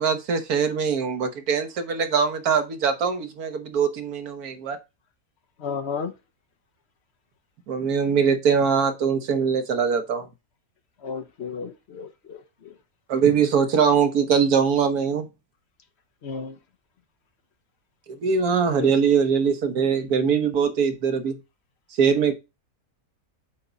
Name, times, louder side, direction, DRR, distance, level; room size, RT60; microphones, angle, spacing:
voice 1, 0.0-4.8 7.7-10.3 13.1-15.3 18.1-21.4 22.0-22.3, right 6 dB, 75° right, 1.6 m, -22 dB
voice 2, 5.6-6.1 11.0-12.4 16.2-16.5 18.7-18.9, left 6 dB, 55° left, 0.9 m, -32 dB
8.3 x 3.6 x 4.0 m
omnidirectional pair, 1.6 m